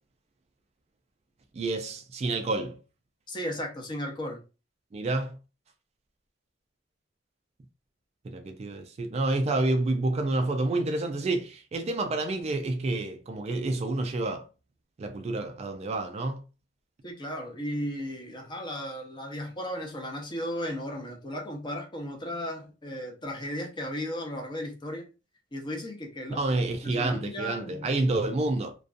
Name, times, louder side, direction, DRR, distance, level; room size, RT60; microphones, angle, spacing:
voice 1, 1.5-2.8 4.9-5.4 8.2-14.4 15.0-16.4 26.3-28.8, right 2 dB, 35° right, 0.3 m, -29 dB
voice 2, 3.3-4.4 17.0-25.1 25.5-27.9, equal, 25° left, 0.7 m, -35 dB
2.5 x 2.2 x 2.4 m
head